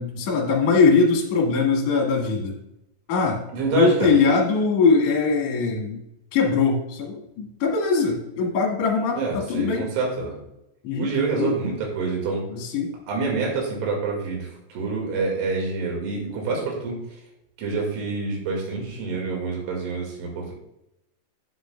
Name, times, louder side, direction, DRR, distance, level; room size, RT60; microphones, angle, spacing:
voice 1, 0.0-2.6 3.1-3.4 3.7-6.0 6.3-9.9 10.8-11.1 11.4-11.5 12.5-12.9, left 4 dB, 50° left, -1 dB, 2.1 m, -21 dB
voice 2, 3.5-4.1 9.2-10.4 11.0-12.5 13.1-17.0 17.6-20.5, right 4 dB, 70° right, 0 dB, 4.4 m, -27 dB
10.5 x 8.0 x 2.3 m, 0.85 s
omnidirectional pair, 5.7 m